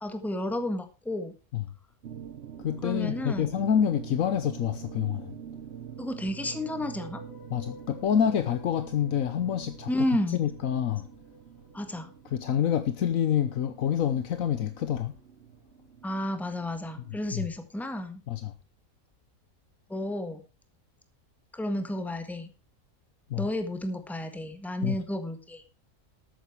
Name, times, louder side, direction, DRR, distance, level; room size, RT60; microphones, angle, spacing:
voice 1, 0.0-1.3 2.8-3.5 6.0-7.2 9.9-10.4 11.7-12.1 16.0-18.2 19.9-20.4 21.5-22.5 23.4-25.6, left 1 dB, ahead, 1.5 m, -32 dB
sound 1, 2.0-17.3, right 9 dB, 55° right, 0.9 m, -46 dB
voice 2, 2.6-5.3 7.5-10.1 10.4-11.1 12.3-15.2 17.3-17.5 18.3-18.5 23.3-23.5 24.8-25.0, left 9 dB, 75° left, 1.3 m, -27 dB
sound 2, 6.3-13.5, left 1 dB, 50° left, 2.9 m, -53 dB
12.5 x 9.3 x 4.6 m
omnidirectional pair, 1.4 m